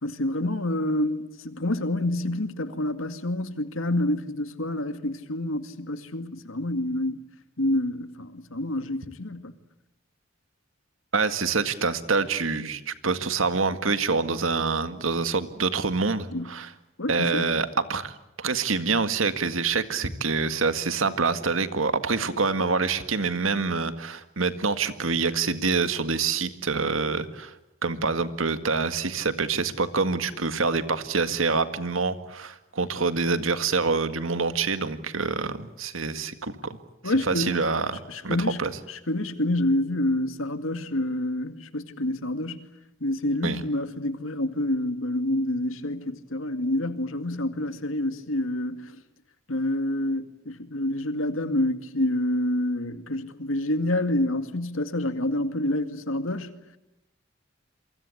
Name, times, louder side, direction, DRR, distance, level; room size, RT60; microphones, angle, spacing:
voice 1, 0.0-7.2 7.6-9.5 16.3-16.5 17.0-17.5 37.0-37.6 38.1-38.6 38.9-42.6 43.0-49.0 49.5-56.5, left 1 dB, 90° left, 2.1 m, -28 dB
voice 2, 11.1-16.7 17.1-27.5 27.8-36.8 37.0-38.7 43.4-43.6, right 4 dB, 85° right, 1.9 m, -26 dB
28.0 x 24.5 x 8.6 m
head